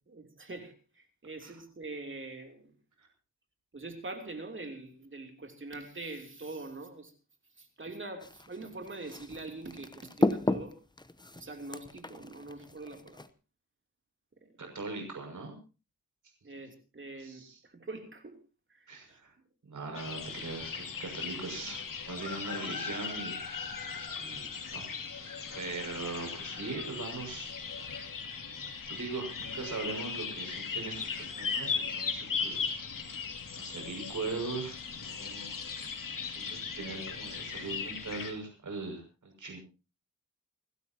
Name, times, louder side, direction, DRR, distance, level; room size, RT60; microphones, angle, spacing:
voice 1, 0.1-2.7 3.7-7.1 7.6-10.8 11.4-13.2 14.4-14.5 16.4-18.4 18.7-19.2, right 2 dB, 40° right, 3.1 m, -44 dB
sound 1, 8.2-13.3, left 2 dB, 15° left, 0.9 m, -34 dB
voice 2, 14.6-15.6 17.2-17.6 18.9-19.3 19.6-23.4 24.2-24.9 25.2-28.3 28.9-32.8 33.6-35.6 36.2-39.6, right 3 dB, 70° right, 6.3 m, -40 dB
sound 2, 19.9-38.3, left 5 dB, 85° left, 2.6 m, -38 dB
29.0 x 12.5 x 2.9 m
wide cardioid pair, 100°, 32 cm